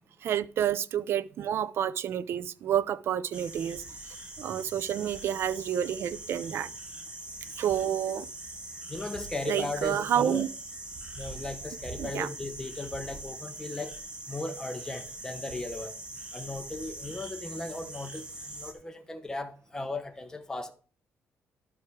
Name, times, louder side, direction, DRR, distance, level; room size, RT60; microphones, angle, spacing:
voice 1, 0.2-3.8 4.4-6.7 7.6-8.3 9.5-10.5 12.0-12.3, right 10 dB, 60° right, 0.5 m, -29 dB
sound 1, 3.3-18.7, right 2 dB, 20° right, 1.7 m, -42 dB
voice 2, 8.9-10.4 11.1-13.9 14.3-15.9 16.3-20.7, left 2 dB, 15° left, 0.9 m, -37 dB
11.5 x 5.8 x 4.7 m
cardioid pair, 135°, 5 cm